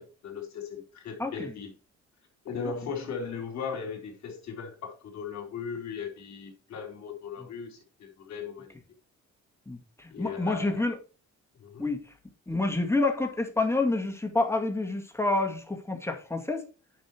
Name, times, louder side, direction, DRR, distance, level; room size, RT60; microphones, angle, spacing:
voice 1, 0.0-1.7 2.4-8.7 10.1-10.8 11.6-11.9, left 6 dB, 65° left, 3.7 m, -38 dB
voice 2, 1.2-1.5 9.7-11.0 11.8-12.0 12.5-16.6, left 2 dB, 10° left, 2.2 m, -28 dB
9.7 x 5.7 x 4.6 m
cardioid pair, 90°, 30 cm